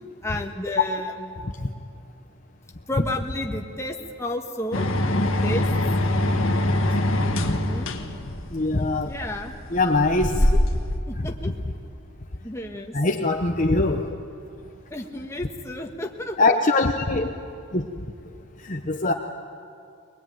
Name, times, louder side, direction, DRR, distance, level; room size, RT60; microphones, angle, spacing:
voice 1, 0.2-1.4 2.9-4.9 5.2-5.7 7.5-7.9 9.0-9.5 10.3-10.6 11.1-11.5 12.4-12.9 14.9-16.6, left 1 dB, 15° left, 2 dB, 1.6 m, -32 dB
sound 1, 4.7-11.0, left 1 dB, 65° left, 1.7 m, -23 dB
voice 2, 8.5-9.1 9.7-10.4 12.9-14.1 16.4-17.3 17.7-17.9 18.7-19.1, left 2 dB, 35° left, 3 dB, 0.9 m, -22 dB
22.5 x 21.0 x 9.4 m, 2.4 s
head